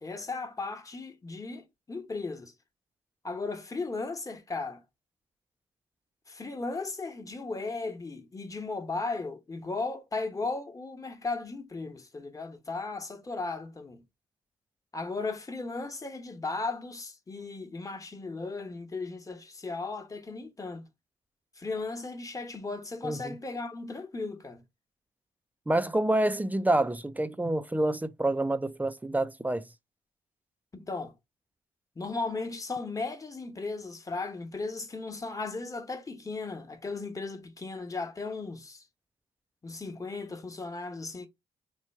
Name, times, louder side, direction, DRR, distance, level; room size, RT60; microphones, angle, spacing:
voice 1, 0.0-2.5 3.2-4.8 6.3-14.0 14.9-20.9 21.6-24.6 30.7-31.1 31.9-38.8 39.6-41.3, left 3 dB, 25° left, 1.1 m, -36 dB
voice 2, 23.0-23.3 25.7-29.6, right 1 dB, 10° right, 0.5 m, -27 dB
4.4 x 2.2 x 4.4 m
cardioid pair, 75°, 14 cm